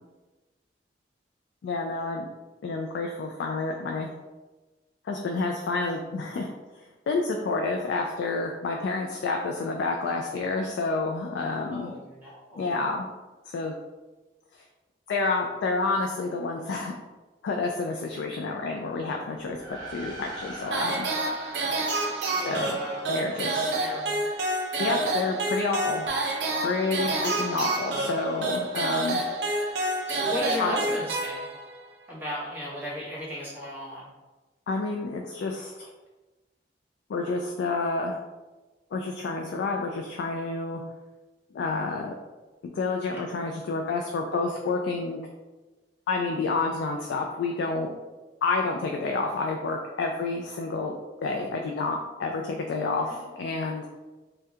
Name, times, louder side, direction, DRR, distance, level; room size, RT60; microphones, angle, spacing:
voice 1, 1.6-2.3 2.6-4.1 5.1-6.5 7.1-12.0 12.6-13.1 13.5-13.7 15.1-16.9 17.4-21.1 22.4-22.8 23.1-23.7 24.8-26.0 26.6-29.2 30.6-30.7 34.7-35.9 37.1-38.2 38.9-40.8 41.5-42.1 42.7-45.2 46.1-47.9 48.4-53.9, left 3 dB, 80° left, 2 dB, 0.3 m, -29 dB
voice 2, 11.7-12.8 22.3-24.2 27.1-27.3 29.2-29.7 30.1-31.5 32.1-34.1 53.1-53.7, left 1 dB, 10° right, -8 dB, 1.0 m, -36 dB
sound 1, 19.5-23.1, right 1 dB, 25° left, 0.7 m, -42 dB
sound 2, 20.7-31.8, right 2 dB, 75° right, 0.6 m, -28 dB
2.7 x 2.2 x 3.5 m, 1.2 s
head